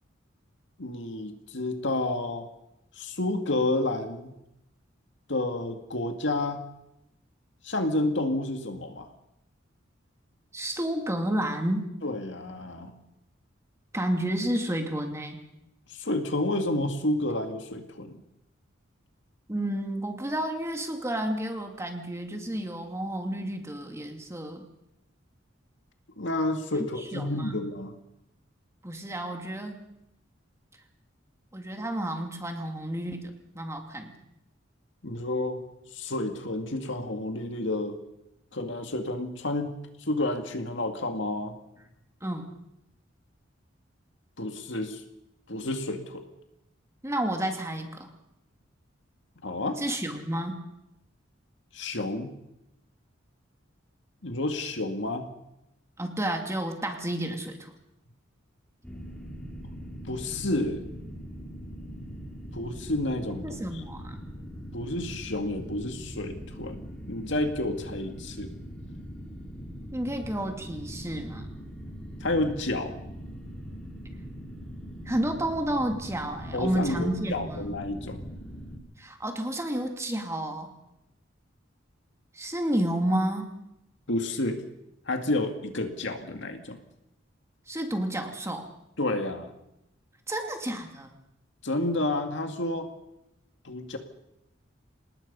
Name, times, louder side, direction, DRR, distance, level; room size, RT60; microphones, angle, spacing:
voice 1, 0.8-2.5 3.0-4.3 5.3-6.6 7.6-9.1 12.0-12.9 15.9-18.2 26.2-28.0 35.0-35.6 35.9-38.0 38.5-39.8 40.1-41.5 44.4-45.0 45.5-46.2 49.4-49.8 51.7-52.3 54.2-55.3 60.0-60.8 62.5-63.8 64.7-68.5 72.2-72.9 76.5-78.2 84.1-84.6 85.1-86.8 89.0-89.5 91.6-92.9 93.6-94.0, left 2 dB, 65° left, 5 dB, 2.2 m, -30 dB
voice 2, 10.5-11.9 13.9-15.4 19.5-24.6 27.1-27.6 28.8-29.8 31.5-34.1 42.2-42.5 47.0-48.1 49.8-50.6 56.0-57.7 63.4-64.2 69.9-71.5 75.1-77.8 79.0-80.7 82.3-83.5 87.7-88.7 90.3-91.1, right 1 dB, 15° right, 4 dB, 2.5 m, -31 dB
sound 1, 58.8-78.8, equal, 5° left, 3.6 m, -41 dB
27.5 x 19.5 x 5.5 m, 0.87 s
head